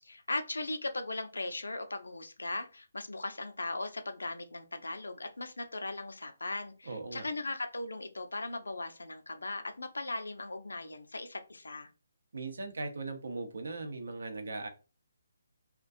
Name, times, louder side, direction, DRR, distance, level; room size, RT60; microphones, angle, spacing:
voice 1, 0.0-11.9, left 2 dB, 80° left, 7 dB, 0.5 m, -38 dB
voice 2, 6.8-7.3 12.3-14.7, right 3 dB, 70° right, 6 dB, 0.6 m, -39 dB
2.3 x 2.2 x 2.6 m, 0.32 s
figure-of-eight pair, 145°, 0 cm